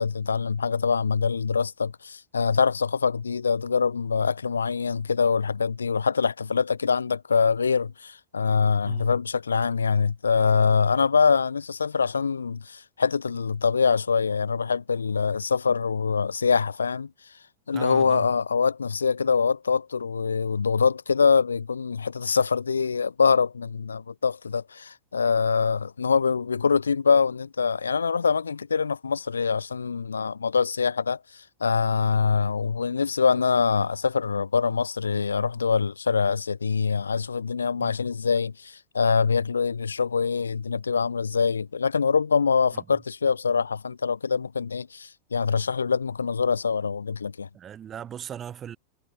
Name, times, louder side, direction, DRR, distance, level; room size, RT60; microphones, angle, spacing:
voice 1, 0.0-17.1 17.7-47.5, left 5 dB, 75° left, 5.1 m, -24 dB
voice 2, 17.7-18.3 37.8-37.9 42.7-42.8 47.5-48.8, right 9 dB, 25° right, 7.4 m, -38 dB
figure-of-eight pair, 90°, 0 cm